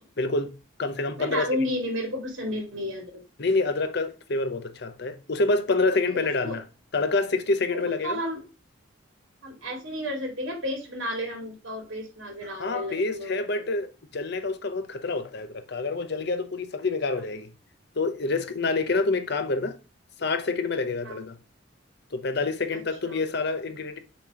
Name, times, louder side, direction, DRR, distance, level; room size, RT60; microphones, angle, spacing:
voice 1, 0.2-0.5 0.8-1.5 3.4-6.6 6.9-8.2 12.5-17.5 18.0-19.8 20.2-21.4 22.1-24.0, left 3 dB, 55° left, 0.8 m, -27 dB
voice 2, 1.2-3.1 6.1-6.6 7.7-8.4 9.4-13.4 21.0-21.2 22.7-23.2, left 1 dB, 75° right, 2.5 m, -32 dB
6.9 x 3.0 x 4.8 m
head